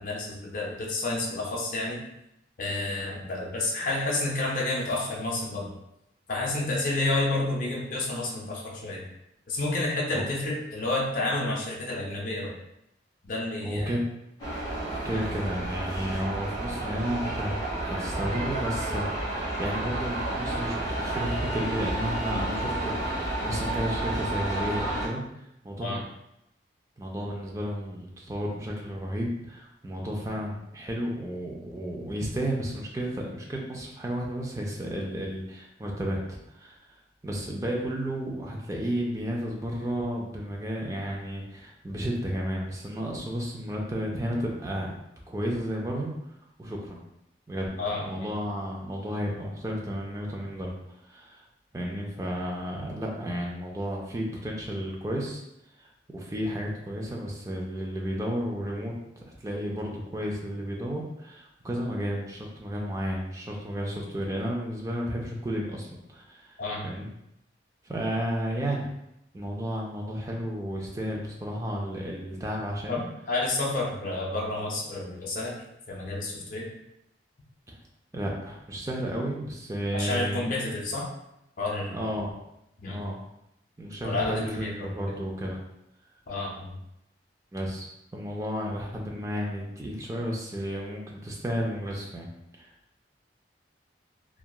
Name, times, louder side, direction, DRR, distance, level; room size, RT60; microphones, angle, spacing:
voice 1, 0.0-2.0 2.6-5.8 6.3-9.1 9.5-12.5 13.2-14.0 15.1-15.2 25.8-26.0 47.8-48.3 66.6-66.9 72.9-75.6 75.9-76.7 79.9-81.1 81.6-82.0 82.8-83.0 84.0-85.0 86.3-86.7, left 2 dB, 45° left, -3 dB, 0.5 m, -30 dB
voice 2, 13.6-14.0 15.0-25.2 25.6-26.0 27.0-36.8 37.2-45.0 45.3-46.1 46.6-47.0 47.5-51.4 51.7-55.4 55.8-66.6 66.8-67.1 67.8-68.9 69.3-73.0 77.7-77.8 78.1-80.4 81.9-82.3 82.9-83.2 83.8-85.6 87.5-92.3 92.6-92.7, equal, 15° right, -1 dB, 0.4 m, -32 dB
sound 1, 14.4-25.1, right 1 dB, 20° left, 1.1 m, -31 dB
2.8 x 2.3 x 2.3 m, 0.83 s
head